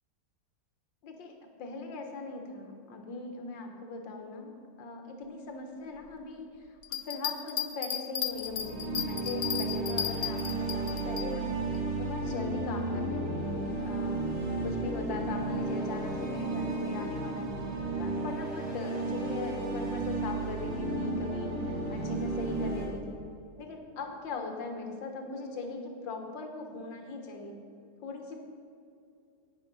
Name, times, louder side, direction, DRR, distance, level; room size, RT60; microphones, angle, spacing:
voice 1, 1.0-8.8 9.1-11.5 11.8-14.2 14.6-17.6 18.0-23.2 23.6-27.6 28.0-28.4, left 3 dB, 90° left, 4 dB, 1.9 m, -40 dB
sound 1, 6.8-11.3, left 9 dB, 60° left, 0.9 m, -34 dB
sound 2, 8.3-22.9, right 2 dB, 85° right, 2.9 m, -33 dB
10.5 x 9.2 x 5.3 m, 2.6 s
omnidirectional pair, 1.9 m